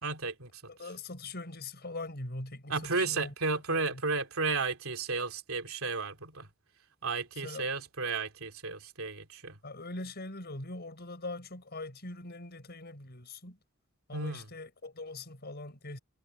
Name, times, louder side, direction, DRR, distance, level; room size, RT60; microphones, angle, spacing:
voice 1, 0.0-0.6 2.7-6.5 7.0-9.6 14.1-14.5, right 4 dB, 90° right, 3.0 m, -33 dB
voice 2, 0.7-3.3 3.7-4.0 7.4-7.7 9.6-13.6 14.1-16.0, left 2 dB, 50° left, 5.8 m, -42 dB
head